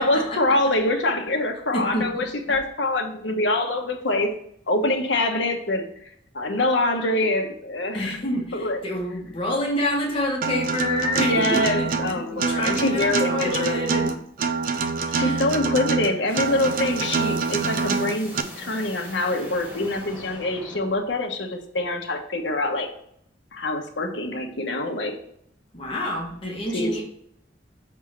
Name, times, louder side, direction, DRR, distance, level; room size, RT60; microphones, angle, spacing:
voice 1, 0.0-4.3 4.7-5.9 6.3-8.2 8.5-8.8 11.2-13.8 15.1-22.9 23.5-25.1 26.7-27.0, left 2 dB, 90° left, 3 dB, 1.2 m, -25 dB
voice 2, 1.7-2.3 7.9-12.0 12.3-14.1 15.1-15.6 25.7-27.0, left 1 dB, 30° left, -2 dB, 1.4 m, -28 dB
Acoustic guitar, 10.4-18.4, right 5 dB, 50° right, 0.5 m, -26 dB
sound 1, 16.3-21.1, equal, 10° right, 1.8 m, -41 dB
6.2 x 3.6 x 6.0 m, 0.68 s
head